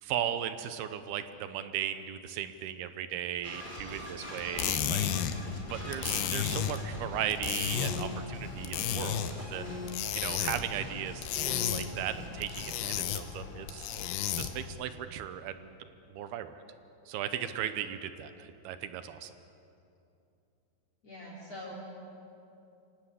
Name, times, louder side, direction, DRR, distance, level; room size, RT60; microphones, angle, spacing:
voice 1, 0.0-5.1 5.7-9.6 10.1-11.3 11.7-13.9 14.3-15.8 16.1-16.6 17.1-19.3, right 10 dB, 80° right, 11 dB, 2.6 m, -37 dB
sound 1, 3.4-12.9, left 1 dB, 10° left, 3.4 m, -43 dB
sound 2, 4.4-14.7, left 9 dB, 75° left, 2.9 m, -34 dB
voice 2, 21.0-22.0, equal, 40° left, -4 dB, 4.4 m, -43 dB
25.0 x 17.5 x 8.3 m, 2.7 s
omnidirectional pair, 4.9 m